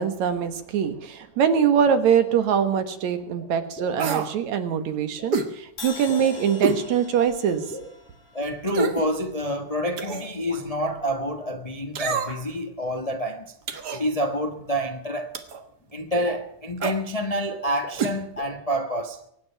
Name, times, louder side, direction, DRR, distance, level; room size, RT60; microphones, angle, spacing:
voice 1, 0.0-7.7, right 7 dB, 70° right, 2.6 m, -23 dB
sound 1, 2.6-2.7 3.3-3.5 3.8-4.1 5.2-5.3 6.0-6.9 7.6-7.9 9.9-10.6 12.3-12.4 13.7-13.8 15.0-15.1 15.5-15.6 15.8-15.9 16.1-16.5 17.4-18.1 18.4-18.6, equal, 5° left, 2.9 m, -40 dB
sound 2, 4.0-4.3 5.3-5.5 6.6-6.8 7.3-7.4 8.7-9.1 10.0-10.3 11.9-12.5 13.7-14.0 15.3-15.6 16.8-17.0 18.0-18.2 18.4-18.5, right 5 dB, 50° right, 1.3 m, -27 dB
Crash cymbal, 5.8-9.8, left 4 dB, 45° left, 4.3 m, -43 dB
voice 2, 8.3-13.4 13.9-15.3 15.9-19.2, equal, 75° left, 0.3 m, -27 dB
24.5 x 9.8 x 5.8 m
omnidirectional pair, 3.5 m